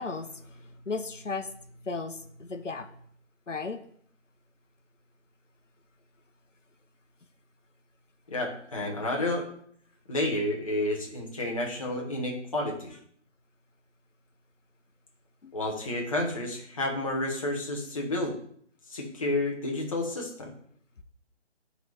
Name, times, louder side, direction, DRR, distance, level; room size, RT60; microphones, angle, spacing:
voice 1, 0.0-1.5 1.8-2.9 3.5-3.8, left 4 dB, 85° left, 0.8 m, -35 dB
voice 2, 8.3-9.5 10.1-13.0 15.5-18.3 18.9-20.5, left 1 dB, 30° left, 1.0 m, -30 dB
9.0 x 4.1 x 3.4 m
figure-of-eight pair, 150°, 36 cm